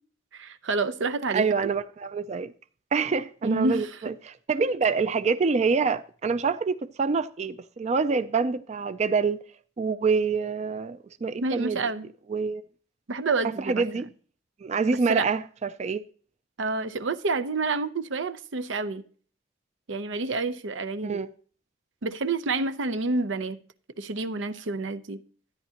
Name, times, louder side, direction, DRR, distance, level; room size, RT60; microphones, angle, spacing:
voice 1, 0.3-1.5 3.4-4.0 11.4-12.1 13.1-14.0 15.1-15.3 16.6-19.0 19.9-21.2 22.0-23.6 24.0-25.2, right 3 dB, 90° right, 0.7 m, -28 dB
voice 2, 1.3-2.5 2.9-9.4 9.8-11.8 12.3-12.6 13.6-14.1 14.6-16.0 21.0-21.3, right 5 dB, 35° right, 0.4 m, -26 dB
13.0 x 9.8 x 2.9 m
head